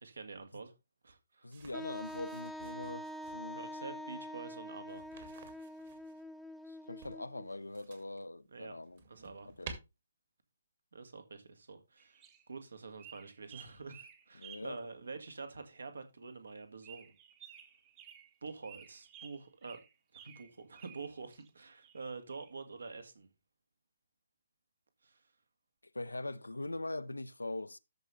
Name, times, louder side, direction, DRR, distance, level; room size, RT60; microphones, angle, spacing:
voice 1, 0.0-0.7 1.0-1.5 3.5-5.1 8.5-8.7 9.1-9.5 10.9-17.1 18.4-19.8 20.1-23.3 25.0-25.2, right 4 dB, 65° right, 2.0 m, -47 dB
voice 2, 1.4-3.1 3.3-3.6 6.7-9.0 9.5-9.7 14.4-14.8 25.9-27.8, left 2 dB, 75° left, 0.7 m, -42 dB
sound 1, 1.5-3.5 4.9-6.2 7.0-8.2 8.7-9.7, right 5 dB, 40° right, 2.3 m, -52 dB
Wind instrument woodwind instrument, 1.7-7.5, equal, ahead, 0.8 m, -45 dB
sound 2, 12.0-12.4 13.0-14.8 15.1-15.2 16.8-18.3 18.6-21.5 21.8-22.5, right 9 dB, 20° right, 1.2 m, -55 dB
13.0 x 5.6 x 3.3 m
figure-of-eight pair, 135°, 0 cm